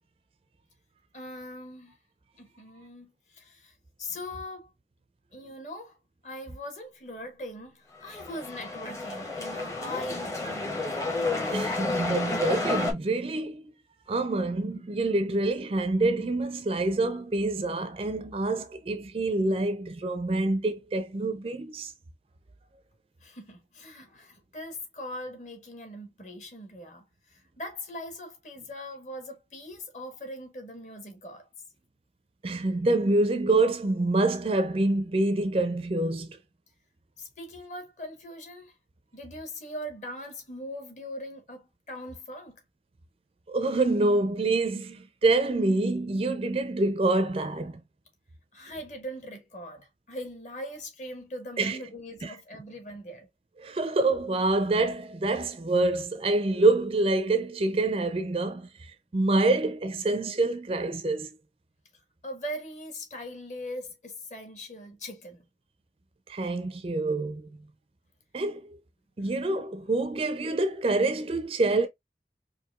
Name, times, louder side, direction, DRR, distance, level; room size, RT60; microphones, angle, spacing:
voice 1, 1.1-1.9 2.4-4.7 5.3-6.0 6.2-11.0 23.2-31.5 37.2-38.7 39.1-42.6 48.5-53.3 62.2-65.4 69.2-69.3, left 1 dB, 40° left, 1.3 m, -41 dB
sound 1, 7.9-12.9, left 3 dB, 20° left, 0.8 m, -31 dB
voice 2, 11.5-13.6 14.1-21.9 32.4-36.3 43.5-47.8 51.6-51.8 52.2-52.3 53.6-58.7 59.1-61.3 66.3-67.5 68.3-68.7 69.2-71.9, right 2 dB, 30° right, 0.4 m, -26 dB
4.6 x 2.6 x 2.3 m
head